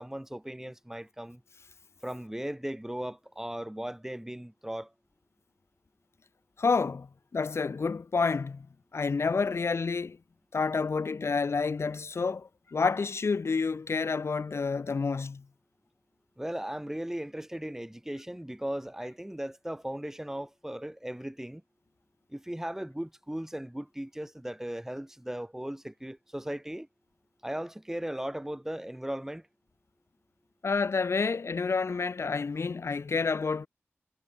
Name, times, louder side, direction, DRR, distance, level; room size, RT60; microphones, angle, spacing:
voice 1, 0.0-1.4 2.0-4.9 16.4-21.6 22.3-26.9 27.4-29.5, right 1 dB, 10° right, 4.3 m, -37 dB
voice 2, 6.6-7.1 7.3-8.7 8.9-10.2 10.5-15.4 30.6-33.7, left 4 dB, 75° left, 2.1 m, -29 dB
wide cardioid pair, 75°, 4 cm